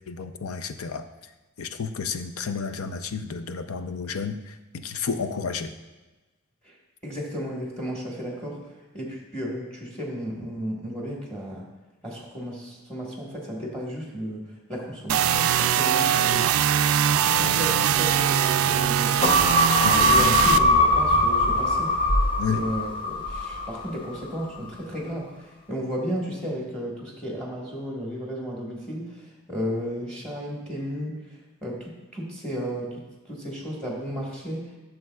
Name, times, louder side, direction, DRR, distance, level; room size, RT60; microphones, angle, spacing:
voice 1, 0.1-1.0 1.6-4.4 4.8-5.7 19.8-20.3 22.4-22.6, left 5 dB, 75° left, 9 dB, 0.6 m, -31 dB
voice 2, 7.0-11.7 12.0-16.8 17.2-21.9 22.5-31.2 31.6-33.0 33.2-34.7, equal, 5° left, -2 dB, 1.4 m, -33 dB
sound 1, 15.1-20.6, right 9 dB, 70° right, 0.3 m, -22 dB
sound 2, 19.2-23.9 24.3-24.4, left 1 dB, 25° left, 0.8 m, -21 dB
14.0 x 6.6 x 2.3 m, 1.2 s
head